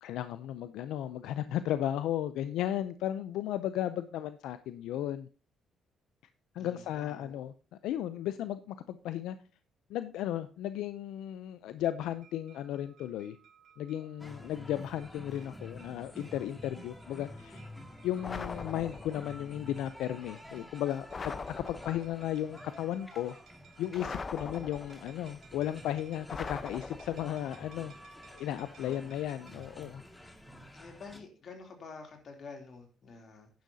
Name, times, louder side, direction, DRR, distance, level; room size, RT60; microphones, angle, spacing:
voice 1, 0.0-5.3 6.5-7.5 7.8-9.4 9.9-13.4 13.8-17.6 18.0-23.4 23.8-27.9 28.3-30.0, left 12 dB, 90° left, 13 dB, 0.5 m, -35 dB
voice 2, 6.5-7.4 24.4-24.6 28.8-29.1 30.7-33.5, left 4 dB, 55° left, 3 dB, 3.0 m, -48 dB
sound 1, 12.0-29.7, right 7 dB, 70° right, 1.6 m, -61 dB
sound 2, 14.2-31.2, left 1 dB, 10° left, 2.0 m, -50 dB
sound 3, 18.2-19.3 21.1-22.2 24.0-25.1 26.3-27.4, left 4 dB, 40° left, 0.8 m, -41 dB
11.0 x 10.5 x 2.7 m, 0.35 s
cardioid pair, 90°, 0 cm